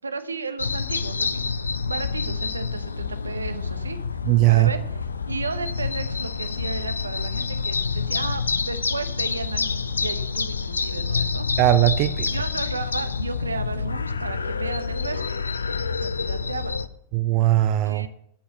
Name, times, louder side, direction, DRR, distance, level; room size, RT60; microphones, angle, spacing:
voice 1, 0.0-1.6 1.8-4.0 4.5-11.5 12.3-15.2 15.9-16.8 17.8-18.1, right 4 dB, 75° right, 10 dB, 0.8 m, -34 dB
sound 1, 0.6-16.9, left 5 dB, 75° left, 0.4 m, -28 dB
voice 2, 4.2-4.7 11.6-12.3 17.1-18.1, right 15 dB, 45° right, 12 dB, 0.5 m, -19 dB
8.4 x 7.2 x 7.5 m, 0.72 s
figure-of-eight pair, 90°, 0 cm